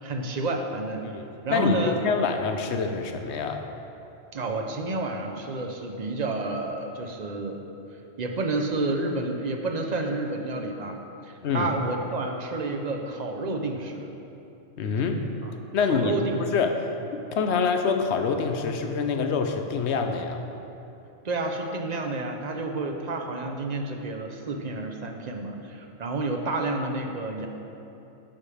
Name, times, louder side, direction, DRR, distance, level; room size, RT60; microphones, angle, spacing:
voice 1, 0.0-1.1 1.4-2.0 4.3-7.6 8.2-14.1 15.4-15.5 15.9-16.4 21.2-27.5, right 2 dB, 40° right, 3 dB, 0.7 m, -30 dB
voice 2, 1.0-3.6 11.4-11.7 14.8-15.2 15.7-16.9 17.1-20.4, left 5 dB, 65° left, 5 dB, 0.9 m, -26 dB
11.5 x 4.9 x 5.0 m, 2.9 s
omnidirectional pair, 1.3 m